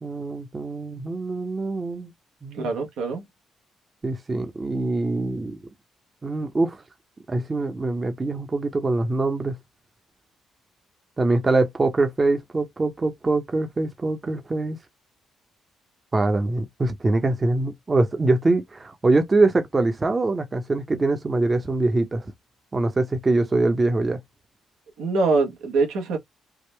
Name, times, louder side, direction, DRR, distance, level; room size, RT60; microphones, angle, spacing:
voice 1, 0.0-2.1 2.4-2.7 4.0-5.6 6.2-6.8 7.3-9.6 11.2-14.8 16.1-22.2 22.7-24.2, right 2 dB, 30° right, 0.8 m, -23 dB
voice 2, 2.6-3.2 25.0-26.2, right 3 dB, 85° right, 1.2 m, -23 dB
3.6 x 2.1 x 3.2 m
supercardioid pair, 65°, 0 cm